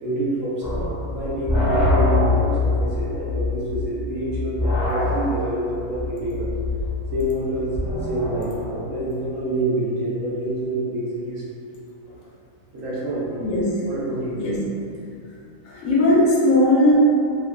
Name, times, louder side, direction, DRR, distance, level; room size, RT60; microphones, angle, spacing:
voice 1, 0.0-6.5 7.1-11.4 12.7-13.5 13.9-14.4, right 1 dB, 65° right, -7 dB, 1.0 m, -27 dB
sound 1, 0.6-8.7, left 2 dB, 10° right, 0.3 m, -24 dB
voice 2, 14.3-14.7 15.6-16.9, left 1 dB, 70° left, -5 dB, 0.9 m, -18 dB
3.2 x 2.1 x 2.3 m, 2.4 s
omnidirectional pair, 1.5 m